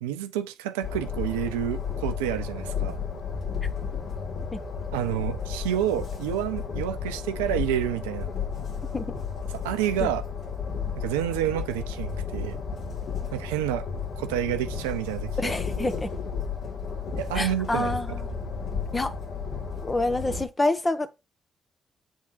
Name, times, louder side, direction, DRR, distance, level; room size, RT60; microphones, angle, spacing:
voice 1, 0.0-3.0 4.9-8.3 9.5-10.2 11.0-12.6 13.3-13.9 14.2-15.9 17.2-18.2, right 11 dB, 85° right, 0.6 m, -29 dB
Train, 0.8-20.5, left 6 dB, 60° left, 1.8 m, -33 dB
voice 2, 15.4-16.1 17.3-18.3 18.9-19.2 19.8-21.1, left 2 dB, 25° left, 1.2 m, -27 dB
7.3 x 3.6 x 4.3 m
hypercardioid pair, 40°, 0 cm